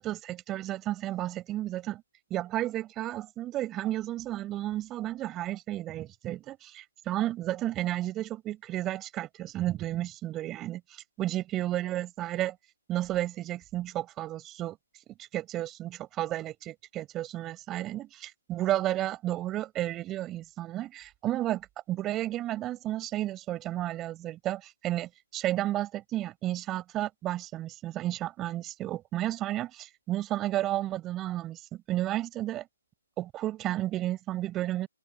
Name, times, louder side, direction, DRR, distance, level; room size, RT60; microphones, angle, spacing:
voice 1, 0.0-2.0 2.3-12.6 12.9-14.8 15.2-32.7 33.2-34.9, right 14 dB, 20° right, 6.6 m, -32 dB
open air
figure-of-eight pair, 145°, 0 cm